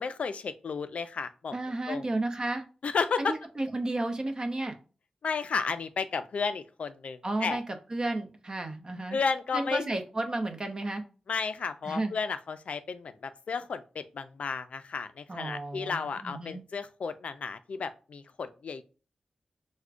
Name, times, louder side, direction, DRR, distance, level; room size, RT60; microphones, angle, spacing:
voice 1, 0.0-1.6 1.9-2.0 2.8-3.3 5.2-7.6 9.1-9.9 11.3-18.8, left 5 dB, 75° left, 11 dB, 0.3 m, -33 dB
voice 2, 1.5-2.6 3.2-4.7 7.2-9.2 9.5-11.0 11.8-12.1 15.3-16.6, right 2 dB, 35° right, 6 dB, 0.6 m, -32 dB
4.6 x 2.1 x 2.5 m, 0.35 s
wide cardioid pair, 105°, 2 cm